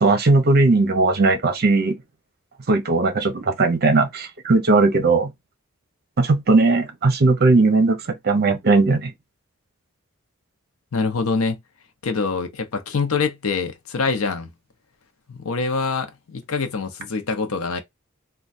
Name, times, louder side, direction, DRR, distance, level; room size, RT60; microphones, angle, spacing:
voice 1, 0.0-2.0 2.7-5.3 6.2-8.0 8.2-9.1, right 3 dB, 50° right, 0.7 m, -18 dB
voice 2, 10.9-11.6 12.0-14.5 15.3-17.8, left 4 dB, 80° left, 0.6 m, -25 dB
3.2 x 2.3 x 2.5 m
head